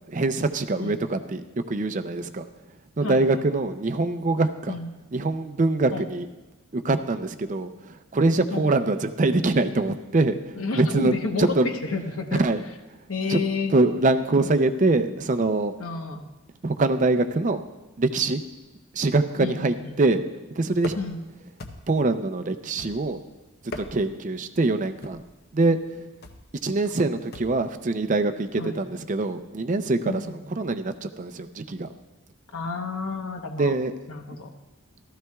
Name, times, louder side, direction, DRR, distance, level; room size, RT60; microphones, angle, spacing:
voice 1, 0.1-2.5 3.0-4.8 5.1-6.3 6.7-11.7 12.4-12.6 13.3-13.4 13.7-15.7 16.6-17.6 18.0-18.4 18.9-20.2 20.6-20.9 21.9-23.2 23.8-25.2 25.5-26.1 26.6-31.9 33.6-33.9 34.3-34.4, right 2 dB, 35° right, 8 dB, 0.5 m, -24 dB
voice 2, 3.0-3.4 4.7-4.9 5.9-6.1 8.5-8.7 10.5-12.4 13.1-13.8 15.8-16.2 19.4-20.0 20.9-21.2 28.6-28.8 30.0-30.4 32.5-33.7 34.1-34.5, left 3 dB, 75° left, 5 dB, 1.0 m, -30 dB
sound 1, 20.8-21.2 21.6-22.1 22.8-23.2 23.6-24.2 25.0-25.4 26.2-26.5 27.3-27.7, left 2 dB, 45° left, 0.7 m, -39 dB
15.0 x 13.0 x 2.3 m, 1.1 s
head